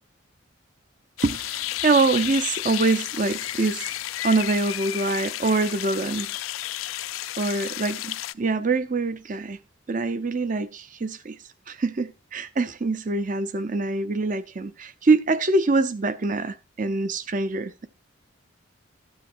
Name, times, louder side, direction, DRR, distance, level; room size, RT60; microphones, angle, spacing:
sound 1, 1.2-8.3, left 14 dB, 85° left, 0.4 m, -32 dB
voice 1, 1.2-3.9 4.2-6.3 7.4-9.6 9.9-11.4 11.7-17.9, right 3 dB, 40° right, 0.6 m, -24 dB
13.0 x 8.9 x 2.6 m
head